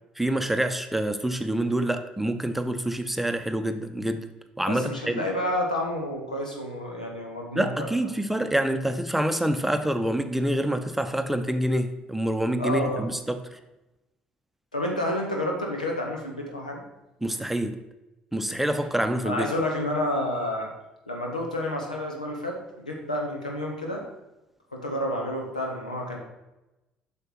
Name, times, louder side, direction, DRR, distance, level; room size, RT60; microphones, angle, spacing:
voice 1, 0.2-4.3 4.6-5.2 7.6-13.6 17.2-17.8 18.3-19.5, right 1 dB, 5° right, 0.8 m, -26 dB
voice 2, 4.7-7.9 12.6-13.0 14.7-16.8 19.2-20.7 21.1-24.1 24.7-26.2, left 1 dB, 90° left, 1.2 m, -29 dB
7.9 x 5.9 x 4.6 m
figure-of-eight pair, 50°, 4 cm